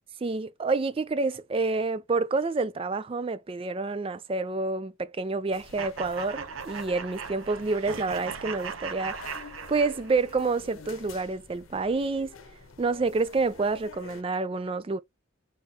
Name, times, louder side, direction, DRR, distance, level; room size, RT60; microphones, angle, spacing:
voice 1, 0.2-12.4 12.8-15.0, right 3 dB, 25° right, 0.3 m, -28 dB
sound 1, 5.5-14.2, left 4 dB, 85° left, 0.7 m, -49 dB
sound 2, 5.8-10.4, right 6 dB, 85° right, 0.8 m, -38 dB
4.2 x 3.7 x 2.8 m
head